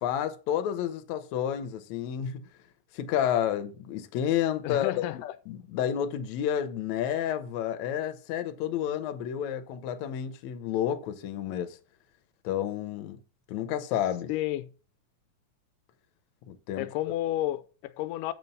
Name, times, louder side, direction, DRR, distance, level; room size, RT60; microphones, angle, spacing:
voice 1, 0.0-2.5 2.9-4.9 5.5-11.8 12.4-13.2 13.5-14.3 16.5-16.9, left 10 dB, 70° left, 1.9 m, -30 dB
voice 2, 4.6-5.4 14.3-14.7 16.8-18.3, left 14 dB, 90° left, 2.2 m, -31 dB
7.5 x 4.5 x 5.3 m
omnidirectional pair, 3.7 m